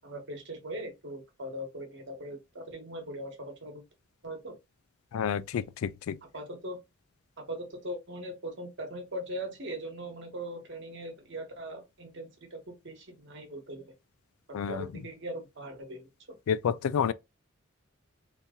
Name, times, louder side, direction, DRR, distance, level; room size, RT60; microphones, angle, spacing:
voice 1, 0.0-3.8 4.2-4.5 6.2-6.8 7.4-13.9 14.5-16.1, right 1 dB, 60° right, 1.1 m, -40 dB
voice 2, 5.1-6.2 14.5-14.8 16.5-17.1, left 7 dB, 90° left, 0.3 m, -29 dB
2.9 x 2.7 x 3.6 m
head